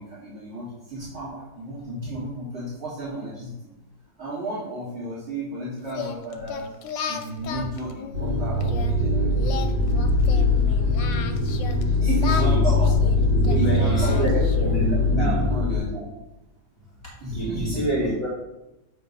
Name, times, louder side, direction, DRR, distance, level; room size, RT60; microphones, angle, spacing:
voice 1, 0.0-3.5 4.2-6.7 7.1-9.3 12.0-12.9 13.5-14.6 14.9-16.0 17.2-17.9, right 1 dB, 40° right, -11 dB, 2.6 m, -33 dB
Singing, 5.9-8.9 9.4-11.8 12.2-14.8, left 7 dB, 90° left, 1.3 m, -34 dB
sound 1, 8.1-15.8, left 2 dB, 60° right, 1.7 m, -21 dB
voice 2, 13.3-15.4 17.3-18.3, right 1 dB, 10° left, -5 dB, 1.2 m, -27 dB
8.1 x 3.3 x 5.3 m, 0.94 s
omnidirectional pair, 1.9 m